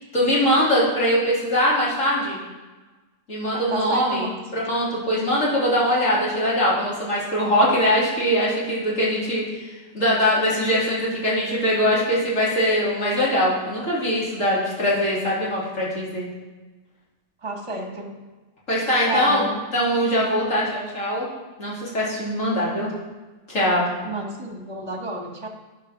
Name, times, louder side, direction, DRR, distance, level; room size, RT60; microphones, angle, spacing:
voice 1, 0.1-2.4 3.3-16.3 18.7-19.5 19.7-21.3 21.6-22.9 23.5-23.9, equal, 55° left, -7 dB, 3.5 m, -22 dB
voice 2, 3.5-4.7 17.4-18.1 19.0-19.6 24.0-25.5, right 2 dB, 20° right, 1 dB, 1.4 m, -30 dB
10.0 x 5.8 x 5.9 m, 1.2 s
omnidirectional pair, 1.6 m